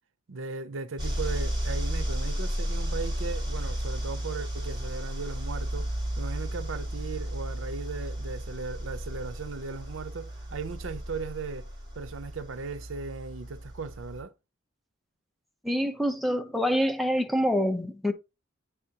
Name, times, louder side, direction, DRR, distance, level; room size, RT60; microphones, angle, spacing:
voice 1, 0.3-11.7 12.0-14.3, right 4 dB, 75° right, 0.6 m, -37 dB
sound 1, 1.0-14.2, equal, 25° right, 3.6 m, -33 dB
voice 2, 15.6-18.1, equal, ahead, 0.7 m, -26 dB
8.3 x 4.9 x 2.8 m
head